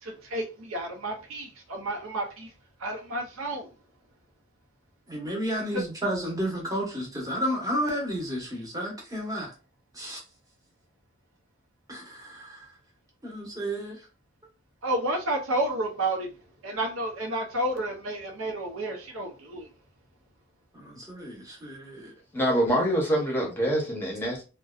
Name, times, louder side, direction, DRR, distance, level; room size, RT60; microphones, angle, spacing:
voice 1, 0.0-2.5 2.8-3.7 5.7-5.8 14.8-16.3 16.6-19.7, right 1 dB, 80° right, 0.7 m, -31 dB
voice 2, 5.1-9.5 9.9-10.2 11.9-12.7 13.2-14.1 20.7-22.1, equal, 15° right, 0.9 m, -32 dB
voice 3, 22.3-24.4, equal, 10° left, 0.8 m, -25 dB
2.6 x 2.2 x 2.3 m
head